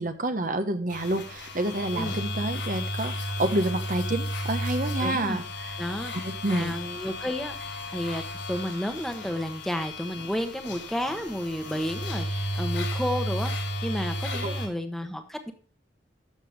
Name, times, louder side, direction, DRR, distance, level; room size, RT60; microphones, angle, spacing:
voice 1, 0.0-5.7 6.2-6.7 14.3-14.5, right 1 dB, 45° right, 8 dB, 1.1 m, -29 dB
sound 1, 0.9-14.7, equal, 80° left, 4.2 m, -33 dB
voice 2, 5.0-5.4 5.8-7.5 7.9-8.2 8.5-15.5, equal, ahead, 6 dB, 1.1 m, -32 dB
13.0 x 7.1 x 3.4 m, 0.42 s
head